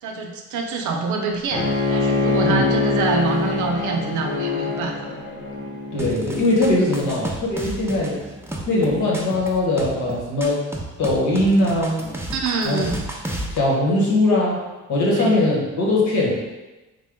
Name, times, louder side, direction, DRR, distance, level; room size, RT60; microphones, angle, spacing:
voice 1, 0.0-5.2 7.0-7.3 12.3-13.0 15.1-15.3, right 4 dB, 75° right, 3 dB, 0.6 m, -26 dB
Bowed string instrument, 1.5-6.6, left 3 dB, 40° left, 1.0 m, -24 dB
voice 2, 5.9-8.2 8.7-10.6 11.0-12.0 12.6-12.8 13.5-14.6 14.9-16.3, left 1 dB, 70° left, -3 dB, 1.2 m, -20 dB
sound 1, 6.0-13.6, right 1 dB, 10° right, 0.5 m, -32 dB
3.5 x 2.2 x 3.7 m, 1.1 s
cardioid pair, 90°, 30 cm